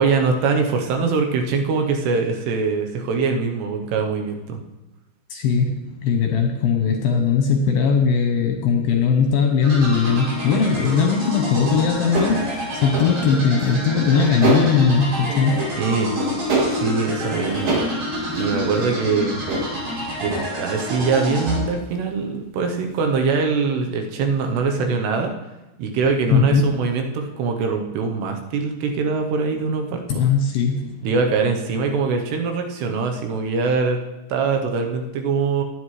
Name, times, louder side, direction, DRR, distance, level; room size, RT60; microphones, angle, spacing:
voice 1, 0.0-4.6 15.8-16.1 16.7-17.7 18.4-19.4 20.2-25.3 25.8-30.0 31.0-34.0 34.3-35.6, right 4 dB, 75° right, 3 dB, 3.0 m, -22 dB
voice 2, 5.3-15.6 26.3-26.7 30.1-31.0, left 5 dB, 75° left, 3 dB, 2.3 m, -19 dB
sound 1, 9.6-21.6, equal, 60° right, 6.0 m, -28 dB
sound 2, 11.6-13.1 13.6-14.9 15.2-15.8 16.2-16.9 17.2-18.0 18.2-19.7 20.2-20.5 20.9-21.3 21.9-22.0 24.4-24.5, right 2 dB, 45° right, 3.4 m, -26 dB
17.5 x 9.7 x 3.2 m, 1.0 s
omnidirectional pair, 5.0 m